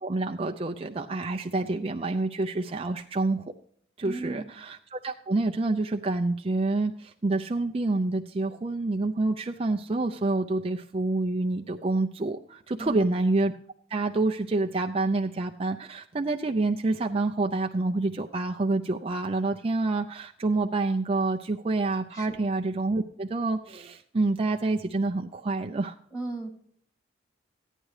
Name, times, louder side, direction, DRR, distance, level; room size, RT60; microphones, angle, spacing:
voice 1, 0.0-3.5 4.0-13.5 13.9-26.0, right 2 dB, 30° right, 3 dB, 0.4 m, -27 dB
voice 2, 4.0-4.5 12.8-13.1 22.1-22.4 26.1-26.5, right 2 dB, 15° left, 1 dB, 2.6 m, -36 dB
15.0 x 9.9 x 3.2 m, 0.64 s
head